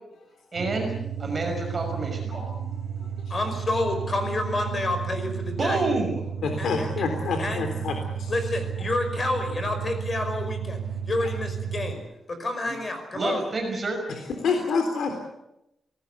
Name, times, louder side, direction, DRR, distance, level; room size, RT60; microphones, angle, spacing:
voice 1, 0.5-0.9 1.2-2.5 5.6-6.2 12.7-12.8 13.1-14.0, right 2 dB, 30° right, 2 dB, 5.9 m, -28 dB
sound 1, 0.6-11.9, right 7 dB, 70° right, 3.8 m, -32 dB
voice 2, 3.3-5.8 6.6-7.1 7.4-7.7 8.3-12.0 12.3-13.4, left 2 dB, 30° left, 7 dB, 5.3 m, -29 dB
voice 3, 6.4-7.9 8.2-8.3 14.4-15.2, left 4 dB, 80° left, 5 dB, 3.5 m, -27 dB
26.0 x 19.0 x 8.3 m, 0.86 s
wide cardioid pair, 180°, 0 cm